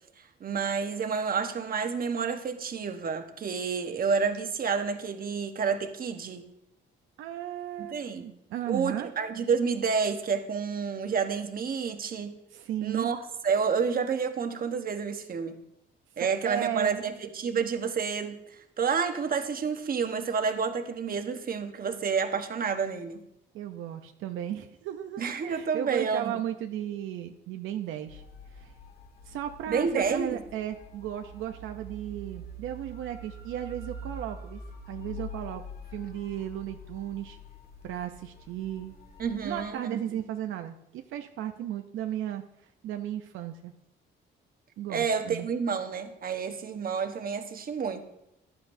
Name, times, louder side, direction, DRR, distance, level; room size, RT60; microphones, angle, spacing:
voice 1, 0.4-6.4 7.8-8.3 8.7-12.4 12.8-15.5 16.2-18.4 18.8-23.2 25.2-26.4 29.7-30.4 39.2-40.2 44.9-48.0, right 5 dB, 45° right, 7 dB, 1.2 m, -29 dB
voice 2, 7.2-9.1 12.5-13.1 16.2-17.0 23.5-28.2 28.5-28.7 29.3-34.6 34.9-35.6 35.9-37.4 37.8-38.9 39.4-42.4 42.8-43.7 44.8-45.5, right 11 dB, 85° right, 6 dB, 0.6 m, -35 dB
sound 1, 28.1-39.7, equal, 50° left, 1.8 m, -45 dB
15.0 x 10.5 x 2.7 m, 0.82 s
cardioid pair, 90°, 20 cm